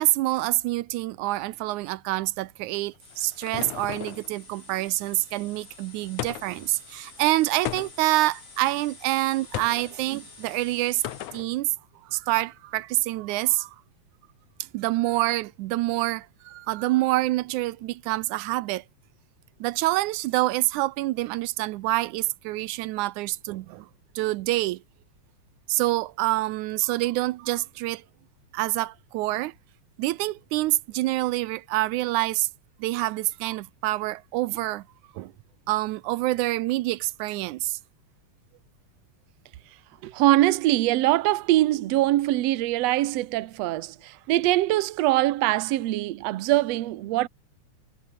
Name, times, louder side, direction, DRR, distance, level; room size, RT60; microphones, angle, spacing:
voice 1, 0.0-11.0 11.3-11.7 12.1-13.8 14.7-18.8 19.6-23.9 24.2-24.8 25.7-28.0 28.5-29.5 30.0-32.5 32.8-34.8 35.2-35.3 35.7-37.8, right 18 dB, 85° right, 2.1 m, -26 dB
sound 1, 2.7-4.3 6.2-6.7 7.6-8.2 9.5-9.9 11.0-11.5, left 13 dB, 80° left, 2.6 m, -35 dB
sound 2, 3.0-11.3, left 3 dB, 50° left, 6.9 m, -49 dB
voice 2, 40.0-47.3, right 16 dB, 70° right, 1.9 m, -23 dB
omnidirectional pair, 3.4 m